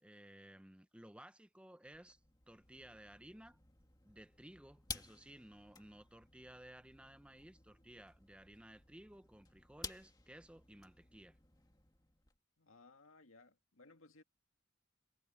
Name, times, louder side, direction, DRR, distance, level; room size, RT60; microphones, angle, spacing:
voice 1, 0.0-2.2 2.5-3.6 4.0-11.4, right 1 dB, 5° right, 0.7 m, -57 dB
sound 1, 1.9-12.4, left 4 dB, 20° left, 2.0 m, -54 dB
voice 2, 12.6-14.2, left 3 dB, 85° left, 2.2 m, -62 dB
head